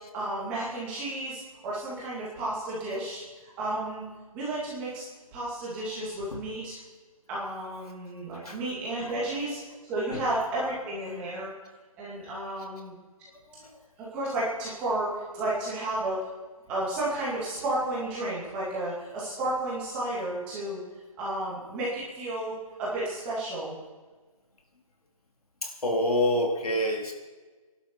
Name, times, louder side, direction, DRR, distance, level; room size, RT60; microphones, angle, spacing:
voice 1, 0.1-3.2 3.6-4.0 4.3-5.1 5.3-6.8 7.3-9.6 9.9-11.5 12.0-12.9 14.0-16.3 16.7-20.8 21.2-22.5 22.8-23.8, right 1 dB, 5° right, -7 dB, 2.5 m, -32 dB
voice 2, 25.6-27.1, left 1 dB, 85° left, 0 dB, 4.0 m, -27 dB
25.0 x 11.5 x 4.6 m, 1.3 s
hypercardioid pair, 180°, 18 cm